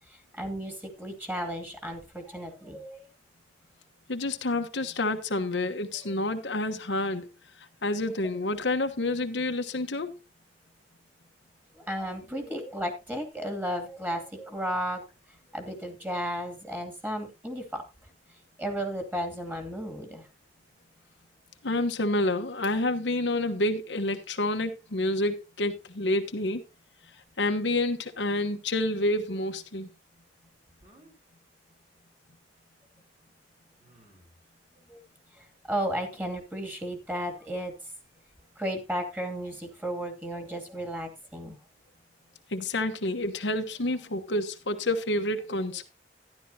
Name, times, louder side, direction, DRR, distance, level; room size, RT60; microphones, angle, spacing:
voice 1, 0.1-3.1 6.0-6.1 11.8-15.0 15.5-17.8 18.6-20.3 34.9-35.0 35.3-37.7 38.6-41.6, equal, 10° right, 2.5 m, -34 dB
voice 2, 4.1-7.3 7.8-10.2 21.6-26.6 27.4-29.9 42.5-45.8, left 2 dB, 85° left, 1.2 m, -28 dB
sound 1, 28.2-28.6 30.8-31.1 32.6-32.7 33.8-34.4, right 1 dB, 40° right, 4.2 m, -58 dB
12.5 x 11.0 x 2.8 m
head